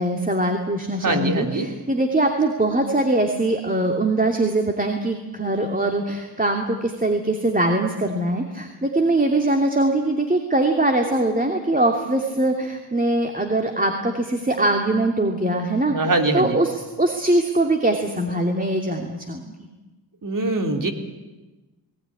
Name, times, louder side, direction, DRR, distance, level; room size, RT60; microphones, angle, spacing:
voice 1, 0.0-19.7, right 2 dB, 20° right, 3 dB, 2.8 m, -22 dB
voice 2, 1.0-1.7 15.9-16.6 20.2-20.9, right 2 dB, 45° right, 5 dB, 3.6 m, -22 dB
19.5 x 18.5 x 10.0 m, 1.1 s
cardioid pair, 55°, 43 cm